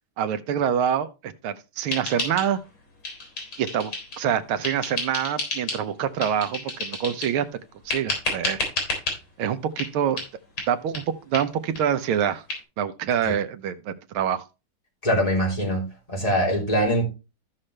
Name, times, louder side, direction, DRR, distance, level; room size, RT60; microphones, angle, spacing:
voice 1, 0.2-2.6 3.6-7.5 7.8-8.6 9.4-10.2 10.7-12.4 12.8-14.4, right 9 dB, 80° right, 1.7 m, -26 dB
sound 1, 1.9-2.8 3.0-4.2 4.6-5.8 6.2-7.4 7.9-9.2 9.8-9.9 10.2-10.3 10.6-10.7 10.9-11.0 11.3-11.5 11.7-11.8 12.1-12.2 12.5-12.6, left 3 dB, 70° left, 4.6 m, -30 dB
voice 2, 15.0-15.8 16.1-17.1, equal, 15° left, 3.4 m, -22 dB
14.0 x 5.8 x 3.2 m
omnidirectional pair, 2.3 m